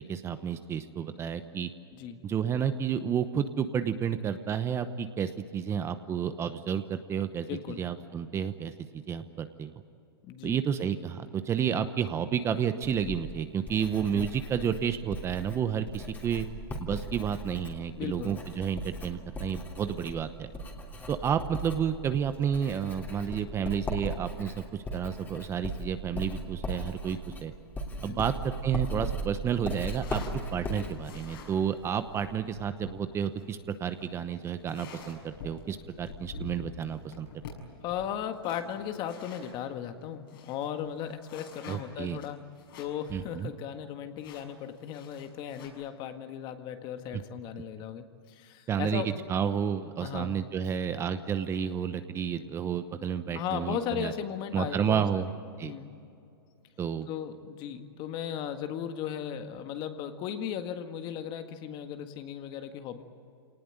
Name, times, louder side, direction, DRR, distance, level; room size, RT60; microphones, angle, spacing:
voice 1, 0.0-1.7 2.2-7.5 7.8-9.7 10.4-16.5 16.8-20.5 21.1-27.5 28.0-30.2 30.5-37.3 41.7-42.2 43.1-43.5 48.7-54.1 54.5-55.3 55.6-55.7 56.8-57.1, right 8 dB, 20° right, 10 dB, 0.9 m, -31 dB
voice 2, 7.5-7.8 10.2-10.6 14.1-14.3 18.0-18.4 28.1-28.3 37.8-42.4 42.8-49.2 50.0-50.3 53.3-55.0 55.6-55.9 57.1-63.0, left 9 dB, 35° left, 7 dB, 1.8 m, -36 dB
Writing, 12.8-32.4, right 1 dB, 15° left, 3.1 m, -38 dB
sound 1, 28.4-39.6 40.0-40.1 40.3-43.1 43.4-43.5 44.2-45.7, left 4 dB, 65° left, 6.8 m, -47 dB
25.5 x 19.0 x 9.1 m, 2.5 s
hypercardioid pair, 130°, 13 cm